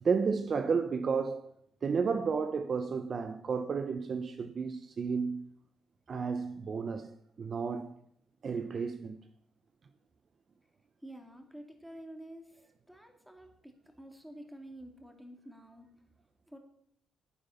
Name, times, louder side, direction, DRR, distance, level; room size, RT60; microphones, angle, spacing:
voice 1, 0.0-1.5 1.8-5.5 6.1-7.9 8.4-9.2, right 5 dB, 45° right, 0.8 m, -32 dB
voice 2, 11.0-15.9 16.5-16.6, right 1 dB, 5° right, 2.4 m, -49 dB
9.6 x 9.0 x 7.1 m
cardioid pair, 90°, 0 cm